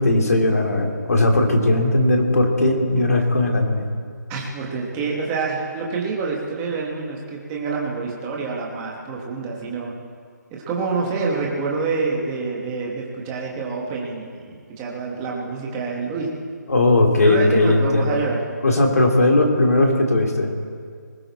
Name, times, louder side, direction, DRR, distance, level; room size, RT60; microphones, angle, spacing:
voice 1, 0.0-3.9 16.7-18.2 18.6-20.5, left 2 dB, 55° left, 2 dB, 2.7 m, -18 dB
voice 2, 4.3-9.9 10.5-16.3 17.2-18.4, right 4 dB, 10° right, -2 dB, 1.2 m, -27 dB
20.0 x 17.5 x 4.1 m, 2.1 s
hypercardioid pair, 180°, 10 cm